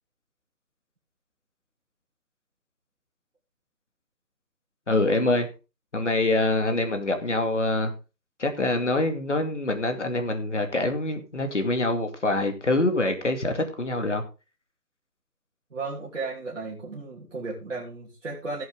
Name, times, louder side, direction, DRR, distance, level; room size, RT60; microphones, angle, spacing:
voice 1, 4.9-5.5 5.9-7.9 8.4-14.2, left 2 dB, 45° left, 2.5 m, -25 dB
voice 2, 15.7-18.6, right 3 dB, 50° right, 3.5 m, -34 dB
17.0 x 7.8 x 3.8 m
figure-of-eight pair, 175°, 49 cm